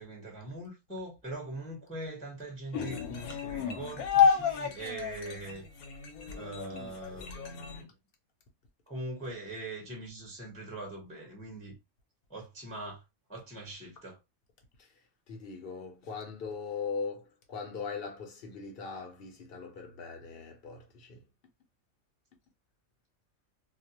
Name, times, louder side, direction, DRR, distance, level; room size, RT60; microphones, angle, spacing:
voice 1, 0.0-5.6 6.3-7.9 8.9-11.8 12.3-13.0 13.3-14.2, right 2 dB, 5° left, 0.7 m, -42 dB
sound 1, 2.7-7.8, left 7 dB, 85° left, 1.0 m, -30 dB
voice 2, 15.3-21.2, left 5 dB, 55° left, 0.7 m, -40 dB
2.4 x 2.1 x 2.8 m
omnidirectional pair, 1.5 m